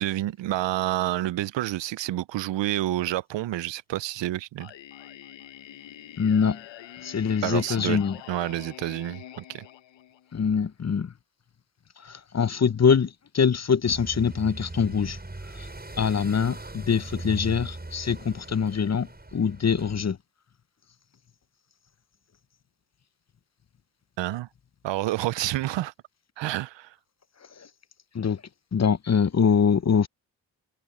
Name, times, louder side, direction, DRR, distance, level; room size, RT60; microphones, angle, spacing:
voice 1, 0.0-4.7 7.4-9.7 24.2-24.5 24.8-25.9 26.4-26.9, right 15 dB, 80° right, 0.7 m, -29 dB
Singing, 4.6-10.5, left 12 dB, 80° left, 1.1 m, -45 dB
voice 2, 6.2-6.6 7.0-8.2 10.3-11.1 12.0-15.2 15.6-15.7 16.0-20.2 28.1-28.4 28.7-30.1, left 6 dB, 35° left, 0.9 m, -24 dB
sound 1, 13.8-20.1, right 2 dB, 20° right, 7.5 m, -39 dB
open air
supercardioid pair, 45°, 44 cm